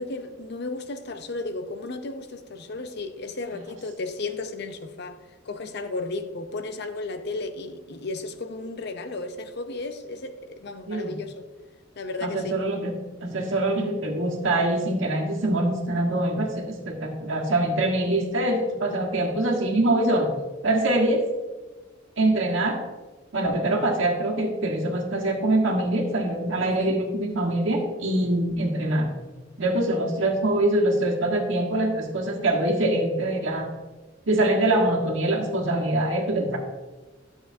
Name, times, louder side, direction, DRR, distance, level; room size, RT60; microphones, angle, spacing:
voice 1, 0.0-5.2 5.5-11.5 12.0-12.6 26.6-26.9, left 3 dB, 60° left, 0.7 m, -34 dB
voice 2, 12.2-12.9 13.2-20.3 20.6-21.2 22.2-22.8 23.3-29.1 29.6-33.7 34.3-36.6, right 1 dB, 90° right, 1.6 m, -24 dB
11.5 x 7.1 x 2.7 m
head